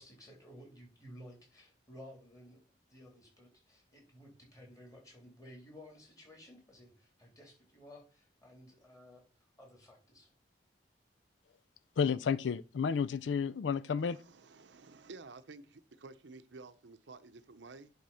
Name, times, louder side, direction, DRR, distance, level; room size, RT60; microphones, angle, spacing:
voice 1, 0.0-2.6 2.9-9.2 9.6-10.3, equal, 20° left, 3.3 m, -55 dB
voice 2, 12.0-14.2, left 6 dB, 85° left, 0.4 m, -31 dB
voice 3, 14.0-17.9, right 3 dB, 80° right, 0.7 m, -52 dB
10.5 x 3.6 x 5.6 m
head